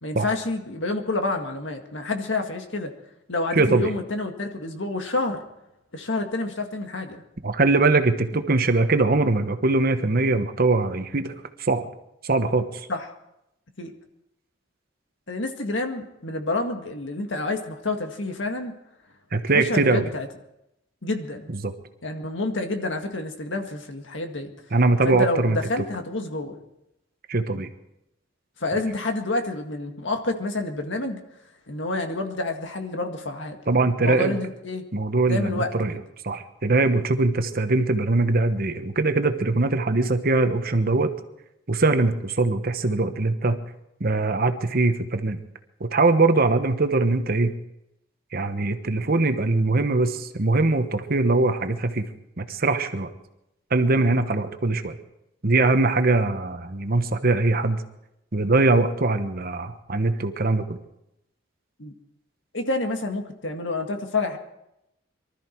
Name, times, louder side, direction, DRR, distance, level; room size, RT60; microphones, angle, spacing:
voice 1, 0.0-2.9 3.3-5.4 5.9-7.2 12.9-13.1 13.8-13.9 15.3-18.7 19.5-20.3 21.0-21.5 22.0-24.5 25.0-26.6 28.6-31.2 31.7-33.6 34.0-34.8 35.3-36.0 61.8-61.9 62.5-64.4, left 2 dB, 65° left, 4 dB, 1.9 m, -28 dB
voice 2, 3.5-3.9 7.4-11.3 11.6-11.8 12.2-12.7 19.3-20.1 21.6-21.7 24.7-25.6 27.3-27.7 33.7-34.4 34.9-35.9 36.2-41.1 41.7-43.6 44.0-45.4 45.8-47.5 48.3-52.1 52.4-53.1 53.7-54.9 55.4-57.8 58.3-60.8, right 3 dB, 50° right, 8 dB, 1.1 m, -22 dB
23.5 x 13.0 x 4.6 m, 0.86 s
head